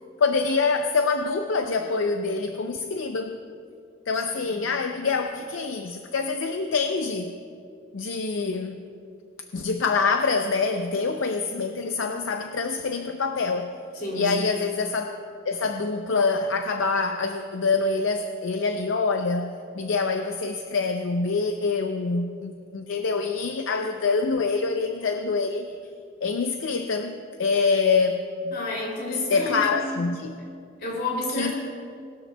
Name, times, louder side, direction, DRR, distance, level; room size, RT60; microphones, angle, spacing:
voice 1, 0.2-3.3 4.1-7.3 7.9-8.8 9.5-13.7 14.1-15.1 15.5-19.5 19.7-25.7 26.2-28.6 29.1-30.3 31.3-31.5, left 4 dB, 75° left, 6 dB, 0.5 m, -25 dB
voice 2, 14.0-14.4 28.5-30.0 30.8-31.5, left 1 dB, 55° left, -2 dB, 2.8 m, -30 dB
19.5 x 12.5 x 2.2 m, 2.4 s
head